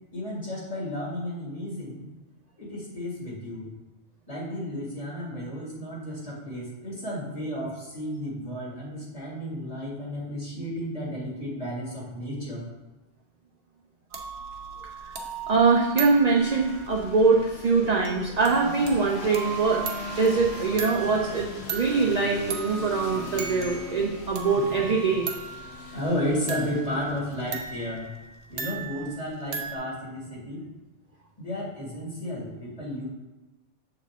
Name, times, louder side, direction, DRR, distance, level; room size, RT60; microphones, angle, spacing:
voice 1, 0.1-2.1 2.6-3.7 4.3-12.6 25.9-28.1 28.5-30.6 31.4-33.0, equal, 30° left, -6 dB, 2.1 m, -33 dB
sound 1, 14.1-29.8, right 6 dB, 75° right, 1.1 m, -37 dB
voice 2, 15.5-19.8 20.2-25.3, right 4 dB, 45° right, -1 dB, 0.6 m, -23 dB
sound 2, 16.4-28.1, left 3 dB, 70° left, 1.0 m, -40 dB
7.3 x 4.4 x 3.6 m, 1.1 s
omnidirectional pair, 1.2 m